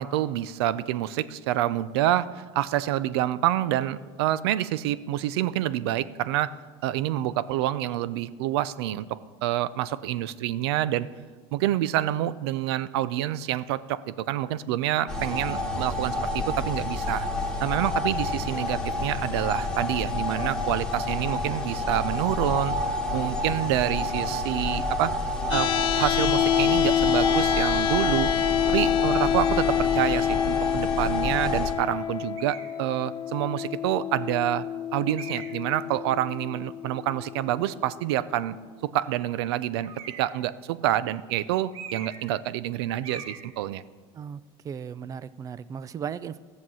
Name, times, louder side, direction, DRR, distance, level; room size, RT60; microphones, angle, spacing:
voice 1, 0.0-6.5 6.8-9.1 9.4-11.1 11.5-17.3 17.6-22.8 23.1-25.1 25.5-28.3 28.7-34.7 34.9-38.6 38.8-39.9 40.2-43.8, right 13 dB, 90° right, 17 dB, 0.5 m, -27 dB
sound 1, 15.1-31.7, left 2 dB, 5° left, 2.0 m, -29 dB
sound 2, 25.5-37.5, left 10 dB, 40° left, 0.6 m, -27 dB
sound 3, 32.3-32.7 33.6-33.7 35.1-35.7 39.8-40.4 41.7-42.3 42.6-42.7 43.0-43.4, right 6 dB, 45° right, 1.7 m, -41 dB
voice 2, 44.1-46.4, right 7 dB, 25° right, 17 dB, 0.4 m, -36 dB
14.0 x 7.3 x 6.2 m, 1.5 s
supercardioid pair, 140°, 13 cm